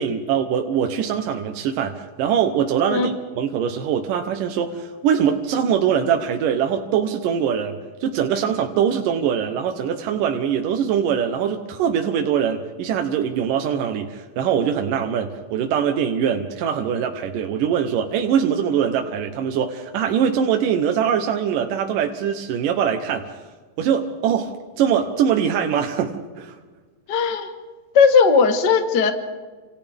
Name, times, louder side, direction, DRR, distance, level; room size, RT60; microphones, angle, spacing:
voice 1, 0.0-23.4 23.8-26.6, right 8 dB, 75° right, 4 dB, 2.5 m, -22 dB
voice 2, 27.1-27.5 27.9-29.1, left 5 dB, 55° left, 6 dB, 1.2 m, -17 dB
30.0 x 26.5 x 3.6 m, 1.4 s
omnidirectional pair, 4.1 m